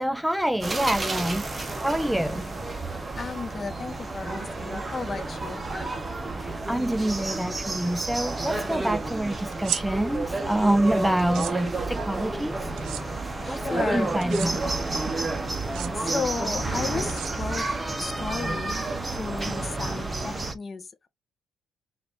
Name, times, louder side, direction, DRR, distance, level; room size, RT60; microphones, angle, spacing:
voice 1, 0.0-1.5 1.8-2.5 6.4-12.6 13.5-14.9, right 1 dB, 5° right, 0.3 m, -26 dB
sound 1, 0.6-20.5, right 2 dB, 20° right, 0.9 m, -30 dB
voice 2, 3.2-5.6 13.2-14.2 15.9-17.7 18.0-18.8 19.1-21.1, left 4 dB, 35° left, 0.8 m, -34 dB
sound 2, 9.5-9.8 11.2-11.5 12.8-13.0 14.2-14.5 15.6-15.9 17.1-17.7, right 11 dB, 80° right, 0.7 m, -33 dB
4.0 x 2.6 x 3.4 m
cardioid pair, 90°, 0 cm